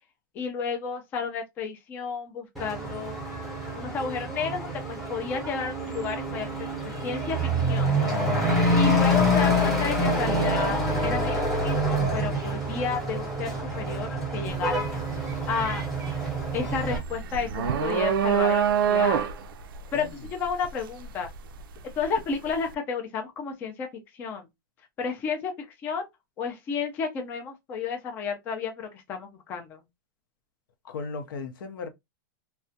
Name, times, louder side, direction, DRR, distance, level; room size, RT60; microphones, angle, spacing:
voice 1, 0.3-3.2 3.7-6.7 7.0-8.2 8.7-14.9 15.5-15.8 16.5-19.2 19.9-21.3 22.0-23.9 24.1-24.5 25.0-26.1 26.4-29.8, left 5 dB, 15° left, 0.3 m, -32 dB
Truck / Accelerating revving vroom, 2.6-17.0, equal, ahead, 0.7 m, -26 dB
sound 1, 14.5-14.8 15.1-22.1, right 7 dB, 90° right, 0.4 m, -26 dB
voice 2, 30.8-31.9, left 4 dB, 75° left, 0.6 m, -36 dB
2.3 x 2.1 x 2.6 m
supercardioid pair, 170°, 11 cm